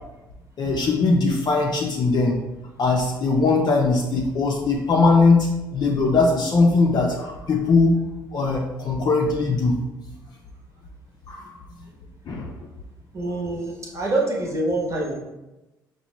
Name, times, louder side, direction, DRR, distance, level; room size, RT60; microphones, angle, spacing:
voice 1, 0.6-2.4 2.8-8.0 8.3-9.8 11.3-11.5 12.3-12.5, left 3 dB, 40° left, -1 dB, 0.5 m, -20 dB
voice 2, 13.1-15.1, right 2 dB, 30° right, -2 dB, 1.0 m, -25 dB
5.7 x 2.2 x 3.0 m, 1.0 s
figure-of-eight pair, 50°, 11 cm